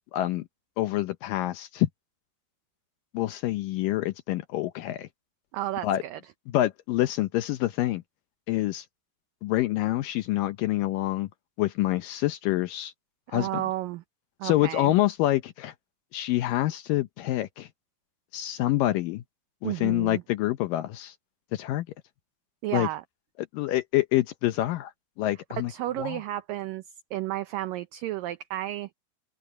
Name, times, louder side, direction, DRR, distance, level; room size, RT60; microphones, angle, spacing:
voice 1, 0.1-0.5 0.8-1.9 3.1-5.1 5.8-6.0 6.5-8.0 8.5-8.9 9.4-11.3 11.6-12.9 13.3-13.6 14.4-15.7 16.1-17.7 18.3-19.2 19.6-21.2 21.5-21.9 22.7-22.9 23.5-24.9 25.2-25.7 26.0-26.2, left 15 dB, 80° left, 2.0 m, -26 dB
voice 2, 5.5-6.2 13.3-14.0 14.4-14.9 19.6-20.2 22.6-23.0 25.6-26.8 27.1-29.0, right 14 dB, 75° right, 2.1 m, -32 dB
open air
omnidirectional pair, 4.7 m